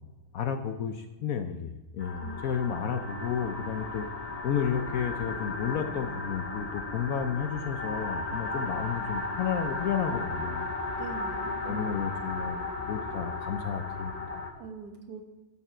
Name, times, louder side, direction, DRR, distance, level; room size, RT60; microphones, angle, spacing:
voice 1, 0.3-4.1 4.4-10.7 11.6-14.4, left 7 dB, 75° left, 7 dB, 0.8 m, -32 dB
sound 1, 2.0-14.5, left 2 dB, 45° left, 0.4 m, -35 dB
voice 2, 11.0-11.8 14.5-15.2, right 5 dB, 60° right, 4 dB, 1.6 m, -42 dB
12.0 x 7.2 x 4.4 m, 1.2 s
omnidirectional pair, 2.2 m